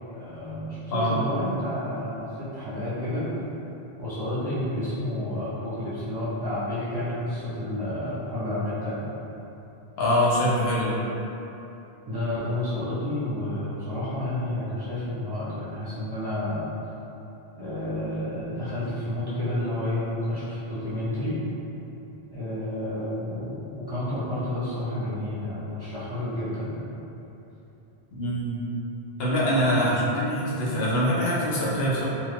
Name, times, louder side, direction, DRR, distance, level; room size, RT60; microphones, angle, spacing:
voice 1, 0.1-3.3 4.0-9.1 12.1-16.7 17.6-21.4 22.3-26.7 29.8-30.1, left 1 dB, 25° right, -13 dB, 0.7 m, -30 dB
voice 2, 10.0-11.0 28.1-28.6 29.2-32.1, equal, 70° left, -7 dB, 0.9 m, -24 dB
2.5 x 2.5 x 3.3 m, 3.0 s
omnidirectional pair, 1.1 m